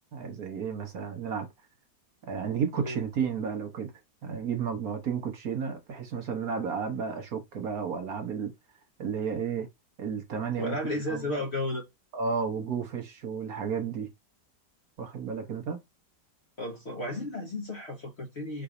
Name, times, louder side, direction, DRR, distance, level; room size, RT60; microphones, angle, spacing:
voice 1, 0.1-1.5 2.3-3.9 4.2-8.5 9.0-9.7 10.0-10.8 11.1-11.2 12.1-14.1 15.0-15.8, right 6 dB, 55° right, 1.4 m, -32 dB
voice 2, 10.6-11.8 16.6-18.6, left 1 dB, 45° left, 1.0 m, -33 dB
4.0 x 2.7 x 4.8 m
omnidirectional pair, 1.9 m